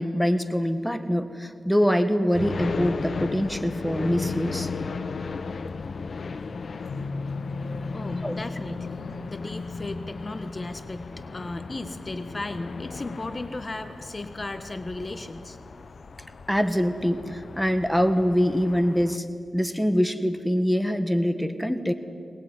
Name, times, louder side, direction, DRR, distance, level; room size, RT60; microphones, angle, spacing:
voice 1, 0.0-4.7 8.2-8.3 16.5-19.2 19.5-21.9, equal, ahead, 9 dB, 1.7 m, -24 dB
sound 1, 2.3-19.2, left 4 dB, 65° left, 0.9 m, -36 dB
Keyboard (musical), 6.8-9.7, left 2 dB, 85° left, 1.9 m, -37 dB
voice 2, 7.9-9.0 9.3-15.6, left 2 dB, 35° left, 9 dB, 1.3 m, -35 dB
23.0 x 19.5 x 9.8 m, 2.5 s
cardioid pair, 70°, 0 cm